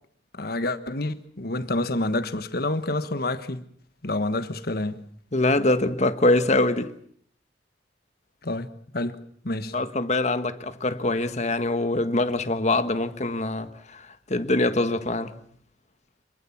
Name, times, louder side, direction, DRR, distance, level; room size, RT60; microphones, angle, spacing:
voice 1, 0.4-3.6 4.0-5.0 8.4-8.7 8.9-9.2 9.4-9.7, left 2 dB, 55° left, 1.5 m, -28 dB
voice 2, 5.3-6.9 9.7-15.3, left 2 dB, 40° left, 1.4 m, -24 dB
25.5 x 21.5 x 7.3 m
head